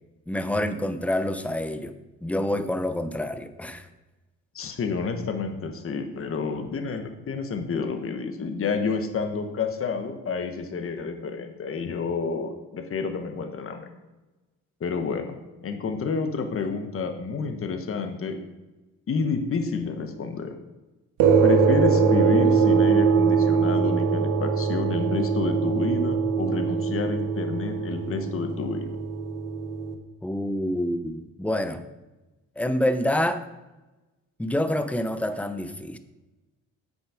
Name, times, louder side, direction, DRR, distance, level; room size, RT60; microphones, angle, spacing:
voice 1, 0.3-1.9 2.2-3.9 21.3-21.4 30.2-31.8 32.6-33.4 34.4-36.0, left 1 dB, 5° left, 10 dB, 0.7 m, -27 dB
voice 2, 4.5-13.9 14.8-15.4 15.6-18.4 19.1-20.5 21.4-29.0, left 5 dB, 45° left, 6 dB, 1.2 m, -29 dB
sound 1, 21.2-29.9, right 6 dB, 90° right, 1.1 m, -22 dB
7.9 x 6.6 x 4.9 m, 1.1 s
cardioid pair, 90°, 30 cm